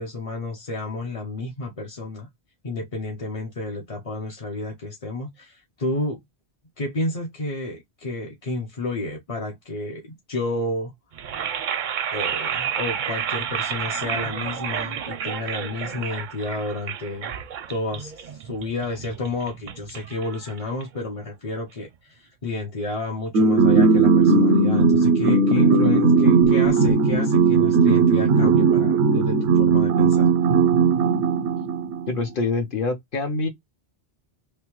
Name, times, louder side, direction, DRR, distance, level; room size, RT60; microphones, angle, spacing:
voice 1, 0.0-2.3 2.6-6.2 6.8-10.9 12.1-17.3 17.7-30.3, left 2 dB, 35° left, 0.7 m, -31 dB
sound 1, 11.1-21.2, right 8 dB, 55° right, 0.6 m, -31 dB
sound 2, 23.3-32.1, right 4 dB, 85° right, 0.8 m, -17 dB
voice 2, 32.1-33.5, left 3 dB, 55° left, 1.0 m, -25 dB
3.4 x 2.1 x 2.9 m
omnidirectional pair, 1.1 m